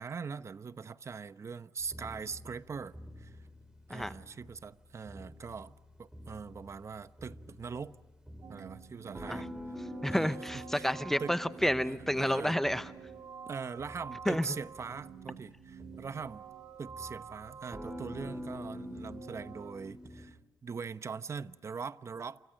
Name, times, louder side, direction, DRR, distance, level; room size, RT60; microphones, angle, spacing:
voice 1, 0.0-3.4 3.9-5.7 6.0-7.9 8.5-9.5 10.0-10.4 10.7-10.9 11.2-11.3 11.8-12.6 13.5-16.4 16.8-22.4, right 5 dB, 45° right, 0.9 m, -42 dB
sound 1, 1.8-20.3, left 1 dB, 10° right, 4.8 m, -48 dB
sound 2, 8.4-19.7, right 7 dB, 70° right, 2.1 m, -49 dB
voice 2, 10.0-12.9 14.3-14.5, equal, 5° left, 0.9 m, -30 dB
29.0 x 25.5 x 6.5 m
cardioid pair, 90°, 7 cm